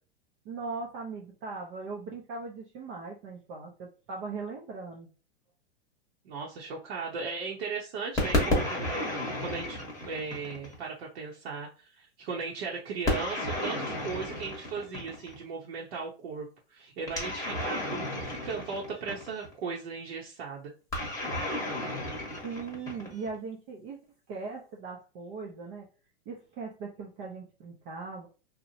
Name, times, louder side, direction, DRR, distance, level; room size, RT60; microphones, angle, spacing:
voice 1, 0.5-5.1 22.4-24.0 24.3-25.9 26.3-28.3, right 4 dB, 30° right, -1 dB, 0.4 m, -39 dB
voice 2, 6.2-9.1 9.4-20.7, right 4 dB, 70° right, -3 dB, 0.8 m, -37 dB
sound 1, 8.2-10.8 13.1-15.4 17.1-19.5 20.9-23.4, left 1 dB, 10° left, 0.9 m, -32 dB
2.9 x 2.0 x 2.6 m, 0.35 s
hypercardioid pair, 135°, 33 cm